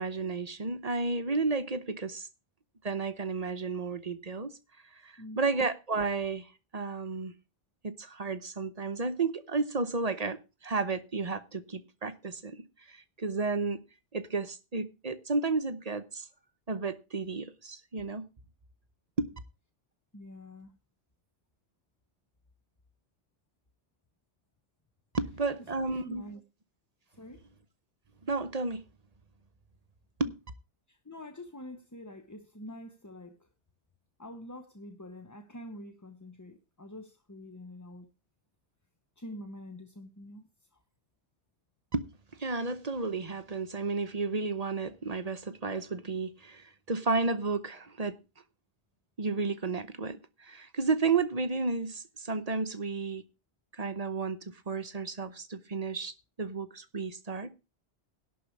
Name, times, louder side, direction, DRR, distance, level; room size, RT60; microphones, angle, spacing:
voice 1, 0.0-2.3 2.8-4.5 4.9-6.5 6.7-7.3 7.8-13.8 14.1-16.3 16.7-18.3 19.2-19.3 25.1-26.3 28.3-28.9 30.2-30.3 41.9-42.1 42.4-48.2 49.2-53.2 53.7-54.4 54.7-57.5, right 4 dB, 35° right, 0.9 m, -32 dB
voice 2, 5.2-5.6 20.1-20.7 25.8-26.4 27.1-27.4 30.9-33.5 34.2-38.1 39.2-40.8, left 1 dB, 20° left, 0.8 m, -46 dB
11.5 x 4.7 x 8.3 m
omnidirectional pair, 1.2 m